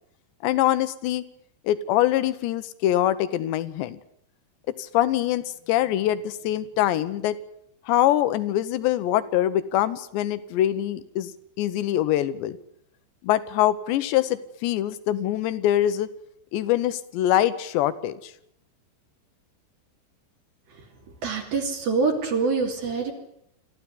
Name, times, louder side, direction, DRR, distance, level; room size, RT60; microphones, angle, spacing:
voice 1, 0.4-1.2 1.7-4.0 4.9-7.4 7.9-11.3 11.6-12.6 13.2-16.1 16.5-18.2, left 13 dB, 75° left, 14 dB, 3.2 m, -24 dB
voice 2, 21.2-23.1, right 4 dB, 55° right, 1 dB, 4.5 m, -25 dB
27.0 x 14.5 x 9.9 m, 0.74 s
omnidirectional pair, 5.4 m